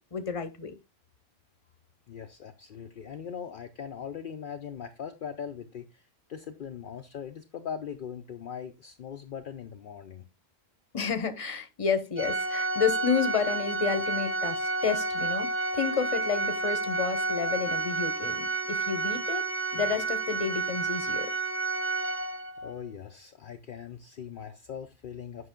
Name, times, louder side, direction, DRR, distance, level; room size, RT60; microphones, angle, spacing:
voice 1, 0.1-0.8 10.9-19.5 19.7-21.3, left 6 dB, 35° left, 0.9 m, -30 dB
voice 2, 2.1-10.3 22.6-25.5, left 7 dB, 60° left, 0.7 m, -40 dB
Organ, 12.2-22.7, right 3 dB, 20° right, 0.4 m, -30 dB
7.9 x 5.6 x 3.6 m
omnidirectional pair, 1.1 m